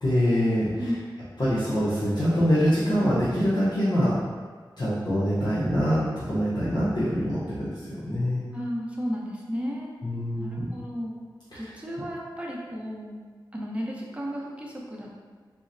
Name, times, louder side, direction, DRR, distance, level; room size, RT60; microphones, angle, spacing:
voice 1, 0.0-0.7 1.4-4.1 4.8-6.0 6.3-8.4 10.0-10.7 11.5-11.7, equal, 55° left, -11 dB, 0.8 m, -24 dB
voice 2, 8.5-9.9 10.4-11.1 11.5-13.2 13.5-15.2, equal, 15° right, -3 dB, 0.7 m, -33 dB
3.8 x 2.0 x 2.6 m, 1.5 s
cardioid pair, 45°, 9 cm